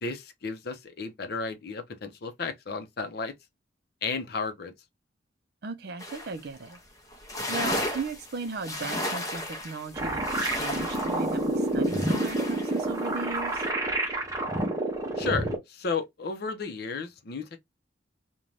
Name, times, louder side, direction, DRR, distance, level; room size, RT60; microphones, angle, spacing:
voice 1, 0.0-3.3 4.0-4.7 15.2-17.6, left 4 dB, 60° left, 0.6 m, -33 dB
voice 2, 5.6-6.8 7.5-13.6, right 4 dB, 60° right, 0.5 m, -36 dB
sound 1, 6.0-6.4 6.7-6.8 7.1-12.9 13.3-13.7, left 1 dB, 20° left, 0.6 m, -34 dB
sound 2, 10.0-15.6, right 1 dB, 20° right, 0.6 m, -28 dB
2.6 x 2.2 x 3.1 m
head